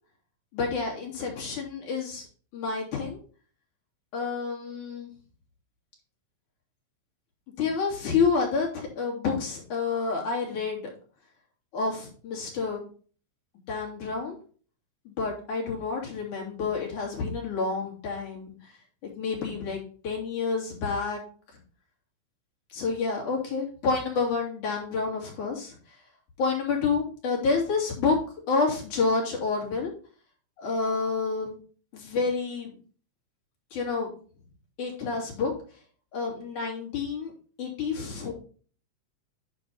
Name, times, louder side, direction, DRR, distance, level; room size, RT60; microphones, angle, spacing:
voice 1, 0.5-2.3 2.5-3.2 4.1-5.1 7.6-10.9 11.7-12.8 13.7-14.4 15.1-18.5 19.2-21.2 22.7-25.8 26.4-28.2 28.5-29.9 30.6-31.6 31.9-32.7 33.7-34.1 34.8-35.5 36.1-37.3 37.6-38.3, left 4 dB, 90° left, -2 dB, 4.2 m, -29 dB
9.7 x 5.4 x 4.4 m, 0.41 s
omnidirectional pair, 3.4 m